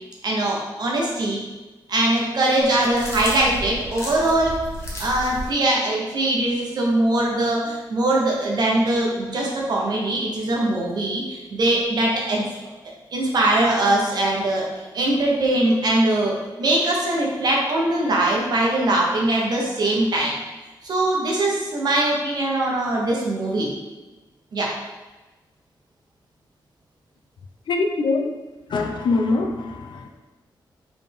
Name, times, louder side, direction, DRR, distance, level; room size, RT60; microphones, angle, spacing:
voice 1, 0.2-1.4 1.9-4.5 5.0-12.5 13.1-14.7 14.9-20.4 20.8-23.7 24.5-24.7, right 1 dB, 60° right, -2 dB, 1.0 m, -21 dB
sound 1, 2.6-5.5, equal, 30° left, 1.1 m, -33 dB
voice 2, 27.7-28.3 28.7-30.1, left 3 dB, 70° left, 3 dB, 0.6 m, -23 dB
4.2 x 3.6 x 3.5 m, 1.2 s
wide cardioid pair, 135°, 8 cm